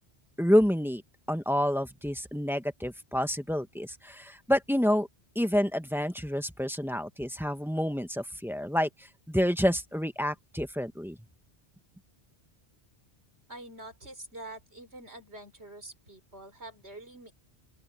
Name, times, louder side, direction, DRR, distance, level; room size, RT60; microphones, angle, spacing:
voice 1, 0.4-1.0 1.3-5.1 5.3-8.9 9.3-11.2, equal, ahead, 1.2 m, -28 dB
voice 2, 13.5-17.3, right 1 dB, 75° right, 5.8 m, -46 dB
open air
omnidirectional pair, 1.1 m